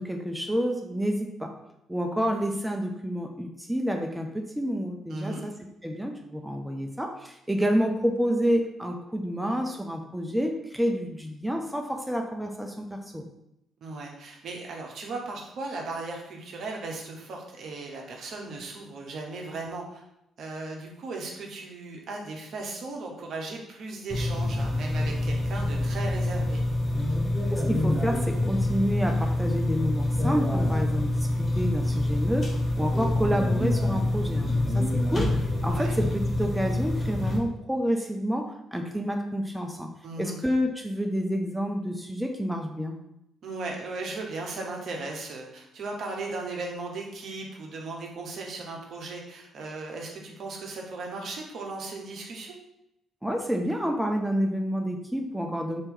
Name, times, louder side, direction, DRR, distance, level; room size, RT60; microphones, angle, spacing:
voice 1, 0.0-1.5 1.9-5.5 5.8-13.3 27.5-39.9 40.2-43.0 53.2-55.8, equal, 5° right, 2 dB, 0.5 m, -29 dB
voice 2, 5.1-5.4 13.8-20.0 20.4-26.6 35.7-36.0 40.0-40.4 43.4-52.6, right 3 dB, 55° right, 0 dB, 0.7 m, -37 dB
sound 1, 24.1-37.4, left 1 dB, 35° left, 0.9 m, -26 dB
2.9 x 2.8 x 3.5 m, 0.83 s
figure-of-eight pair, 45°, 0 cm